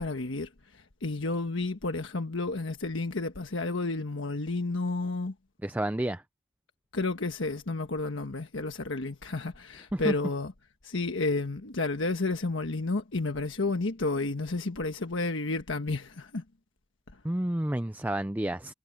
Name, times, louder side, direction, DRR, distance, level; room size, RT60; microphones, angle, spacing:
voice 1, 0.0-5.3 6.9-10.5 10.8-16.4, left 3 dB, 85° left, 1.3 m, -31 dB
voice 2, 5.6-6.2 9.9-10.1 17.2-18.7, right 1 dB, 10° right, 0.4 m, -30 dB
head